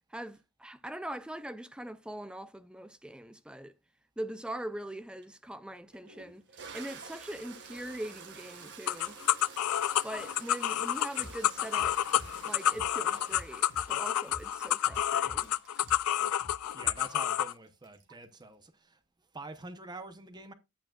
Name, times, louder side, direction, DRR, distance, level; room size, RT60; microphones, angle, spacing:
voice 1, 0.1-3.8 4.2-6.5 6.7-9.2 10.0-12.0 12.4-15.9, right 1 dB, 5° right, 0.5 m, -42 dB
Toilet flush, 5.2-5.3 5.9-18.4, right 5 dB, 55° right, 1.7 m, -50 dB
sound 1, 8.9-17.5, left 11 dB, 85° left, 0.4 m, -29 dB
sound 2, 11.2-17.2, left 1 dB, 65° left, 3.7 m, -50 dB
voice 2, 16.4-19.0 19.3-20.5, right 2 dB, 20° right, 0.8 m, -46 dB
11.0 x 9.0 x 2.4 m
head